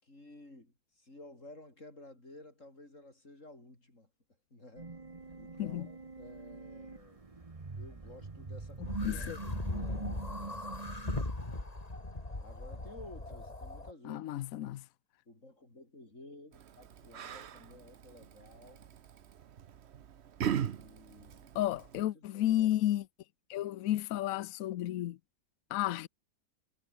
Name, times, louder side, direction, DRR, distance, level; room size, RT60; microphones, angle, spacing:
voice 1, 0.0-4.1 4.5-5.0 5.4-7.2 7.8-10.8 12.4-14.3 15.3-18.9 20.6-21.5 22.0-22.7, left 2 dB, 40° left, 7.0 m, -54 dB
sound 1, 4.8-11.2, right 3 dB, 20° right, 1.1 m, -44 dB
sound 2, 8.8-13.9, left 2 dB, 20° left, 2.9 m, -39 dB
voice 2, 9.0-9.4 14.0-14.8 21.5-23.1 23.5-25.2 25.7-26.1, left 13 dB, 70° left, 0.8 m, -32 dB
Yell, 16.5-22.0, right 9 dB, 55° right, 0.7 m, -40 dB
omnidirectional pair, 2.1 m